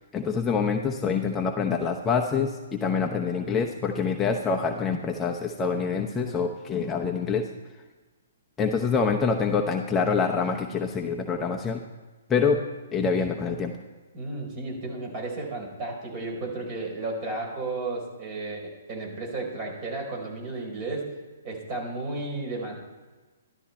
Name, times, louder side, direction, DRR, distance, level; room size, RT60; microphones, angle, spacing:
voice 1, 0.1-7.5 8.6-11.8 12.3-12.6 12.9-13.7, left 5 dB, 15° left, 1 dB, 0.9 m, -26 dB
voice 2, 14.1-21.1 21.4-22.7, right 2 dB, 35° right, 0 dB, 4.6 m, -33 dB
13.0 x 12.0 x 4.4 m, 1.2 s
hypercardioid pair, 130°, 0 cm